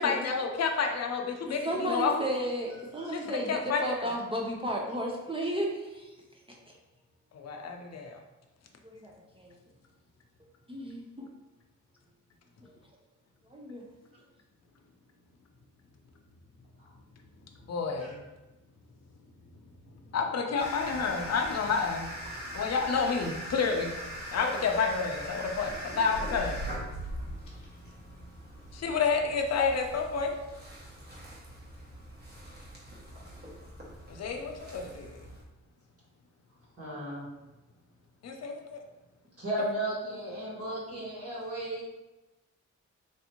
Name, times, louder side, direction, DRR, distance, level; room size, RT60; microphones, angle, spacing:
voice 1, 0.0-2.1 3.1-4.1 7.3-8.1 17.7-18.2 20.1-22.1 22.5-23.9 24.3-26.6 28.7-30.3 34.1-35.1 38.2-38.8 39.6-39.8, left 5 dB, 55° left, 3 dB, 0.5 m, -29 dB
voice 2, 1.5-6.2 8.8-9.5 10.7-11.3 13.5-13.8, right 1 dB, 20° right, -2 dB, 0.5 m, -33 dB
sound 1, 20.6-35.4, equal, 35° right, 1.0 m, -43 dB
sound 2, 20.9-21.8 22.2-22.3 22.6-22.8 24.0-25.0 25.5-27.8, equal, 85° left, 0.8 m, -41 dB
voice 3, 36.8-37.3 39.4-41.8, right 1 dB, 50° right, -6 dB, 1.4 m, -35 dB
3.3 x 2.7 x 2.8 m, 1.1 s
cardioid pair, 80°, 31 cm